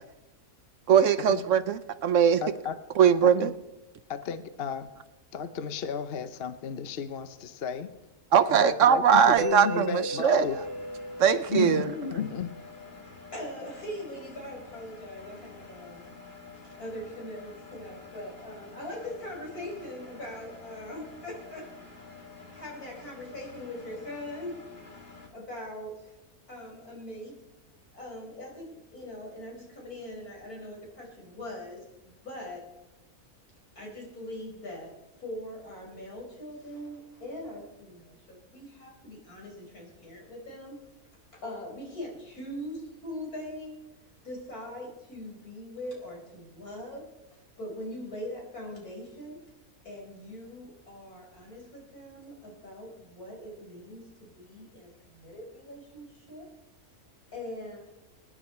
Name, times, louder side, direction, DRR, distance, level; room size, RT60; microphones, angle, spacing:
voice 1, 0.9-2.4 3.0-3.5 8.3-10.4 11.2-11.9, right 8 dB, 65° right, 13 dB, 0.9 m, -21 dB
voice 2, 2.4-2.8 3.2-3.5 4.1-4.9 5.3-7.9 8.5-10.6 11.5-12.5, left 7 dB, 50° left, 11 dB, 0.9 m, -33 dB
Mallet percussion, 9.4-13.1, right 3 dB, 85° right, 1.5 m, -37 dB
Engine, 10.4-25.3, left 4 dB, 35° left, 2.5 m, -48 dB
voice 3, 13.3-16.1 16.8-21.7 22.5-24.6 25.3-26.1 26.5-27.4 27.9-31.8 32.2-32.7 33.8-40.8 41.3-43.8 44.2-47.1 47.6-49.4 49.9-56.5 57.3-57.8, left 1 dB, 80° left, -1 dB, 5.1 m, -41 dB
25.0 x 9.8 x 4.3 m, 1.0 s
omnidirectional pair, 1.6 m